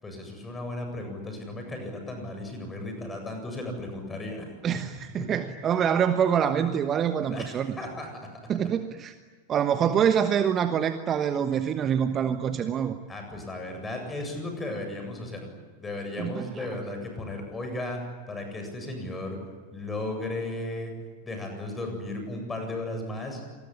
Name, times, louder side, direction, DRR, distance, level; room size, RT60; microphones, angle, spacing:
voice 1, 0.0-4.5 5.2-5.3 7.2-8.3 13.1-15.5 15.8-18.0 18.3-19.4 19.7-20.9 21.2-23.4, left 2 dB, 15° left, 4 dB, 7.9 m, -35 dB
voice 2, 4.6-7.8 8.5-9.1 9.5-13.0 16.2-16.7, right 8 dB, 25° right, 10 dB, 1.2 m, -25 dB
27.0 x 20.5 x 10.0 m, 1.4 s
figure-of-eight pair, 90°, 0 cm